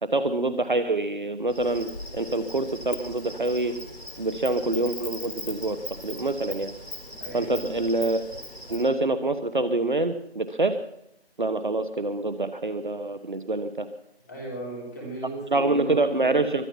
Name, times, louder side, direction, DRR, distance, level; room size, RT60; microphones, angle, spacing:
voice 1, 0.0-3.7 4.2-5.8 6.0-6.7 7.3-8.2 8.7-10.7 11.4-13.9 15.5-16.7, right 2 dB, 50° right, 11 dB, 1.1 m, -26 dB
Insect, 1.5-8.9, left 1 dB, 65° left, 4.1 m, -40 dB
voice 2, 7.2-7.7 14.3-16.4, right 1 dB, 15° left, -3 dB, 4.0 m, -37 dB
23.0 x 9.3 x 5.9 m, 0.78 s
figure-of-eight pair, 165°, 33 cm